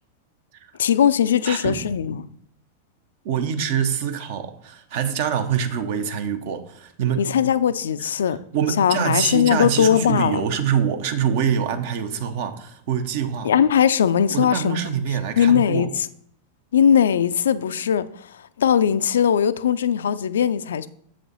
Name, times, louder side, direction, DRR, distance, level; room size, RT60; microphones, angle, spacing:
voice 1, 0.8-2.3 7.2-8.4 8.8-10.4 13.4-14.8 15.4-16.1 16.7-18.0 18.6-20.9, left 8 dB, 65° left, 0.3 m, -19 dB
voice 2, 1.4-1.8 3.2-7.3 8.3-13.5 14.3-15.9, right 8 dB, 50° right, 0.7 m, -25 dB
7.1 x 5.0 x 4.0 m
figure-of-eight pair, 90°, 0 cm